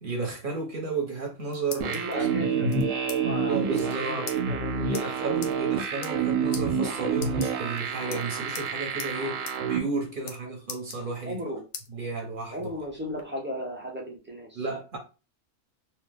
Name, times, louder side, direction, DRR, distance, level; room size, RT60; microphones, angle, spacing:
voice 1, 0.0-3.0 3.4-4.3 4.9-11.4 11.9-12.6 14.5-15.0, right 4 dB, 50° right, 0.8 m, -33 dB
sound 1, 1.2-2.1 2.7-3.2 3.5-3.6 3.7-3.9 4.3-4.4 4.9-5.0 5.4-5.5 5.9-6.3 6.5-6.6 7.1-7.8 8.1-8.7 9.0-9.1 9.5-9.6 9.9-10.4 10.7-11.4 11.7-11.9 12.4-13.2, left 6 dB, 90° left, 1.0 m, -40 dB
sound 2, 1.8-9.8, right 6 dB, 85° right, 1.0 m, -28 dB
voice 2, 1.9-2.7 3.0-5.6 11.3-11.6 12.5-14.7, equal, 15° right, 0.4 m, -36 dB
3.0 x 2.0 x 3.3 m
omnidirectional pair, 1.3 m